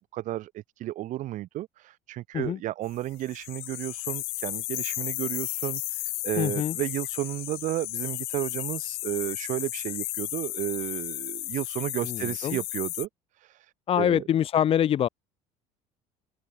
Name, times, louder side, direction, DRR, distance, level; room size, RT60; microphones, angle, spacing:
voice 1, 0.0-13.1 13.4-14.2, right 14 dB, 50° right, 1.7 m, -33 dB
radio interfer, 3.2-13.1, left 22 dB, 70° left, 2.0 m, -34 dB
voice 2, 6.4-6.8 12.0-12.6 13.9-15.1, left 10 dB, 35° left, 1.1 m, -25 dB
cardioid pair, 145°, 16 cm